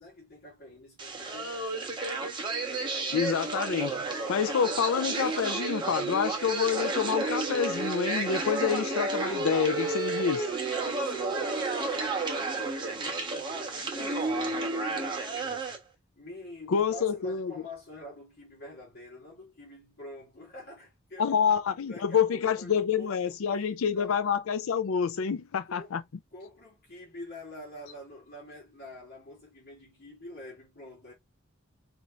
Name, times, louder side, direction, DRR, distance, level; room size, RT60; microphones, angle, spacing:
voice 1, 0.0-2.0 10.8-15.8 16.2-21.3 21.9-24.2 25.7-25.9 26.3-31.1, left 1 dB, 50° left, 2.7 m, -47 dB
sound 1, 1.0-15.8, right 3 dB, 25° right, 1.3 m, -31 dB
voice 2, 3.1-10.5 16.7-17.5 21.2-26.0, left 7 dB, 85° left, 0.4 m, -28 dB
4.3 x 4.3 x 2.5 m
head